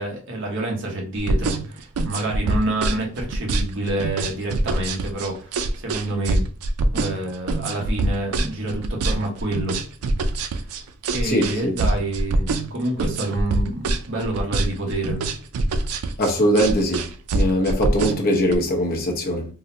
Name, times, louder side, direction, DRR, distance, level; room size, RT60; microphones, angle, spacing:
voice 1, 0.0-6.4 6.9-9.8 11.1-15.2, right 2 dB, 60° right, 1.0 m, -27 dB
sound 1, 1.2-18.6, right 2 dB, 85° right, 0.4 m, -24 dB
voice 2, 11.2-11.7 16.2-17.0 17.3-19.5, equal, 45° left, 0.7 m, -21 dB
3.7 x 2.1 x 2.6 m
head